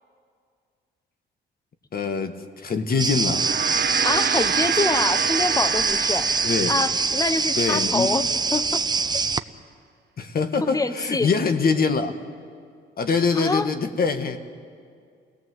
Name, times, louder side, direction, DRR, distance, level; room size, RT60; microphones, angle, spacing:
voice 1, 1.9-3.5 6.4-6.7 7.6-8.1 10.2-12.1 13.0-14.4, left 5 dB, 50° left, 8 dB, 1.9 m, -24 dB
sound 1, 3.0-9.4, right 4 dB, 20° right, 0.7 m, -24 dB
Gong, 3.2-7.9, right 9 dB, 55° right, 0.9 m, -29 dB
voice 2, 4.0-6.3 6.7-8.2 8.5-8.8 9.1-9.2 10.6-11.3 13.3-13.7, left 3 dB, 15° left, 12 dB, 1.1 m, -25 dB
29.5 x 18.0 x 7.9 m, 2.2 s
cardioid pair, 90°, 20 cm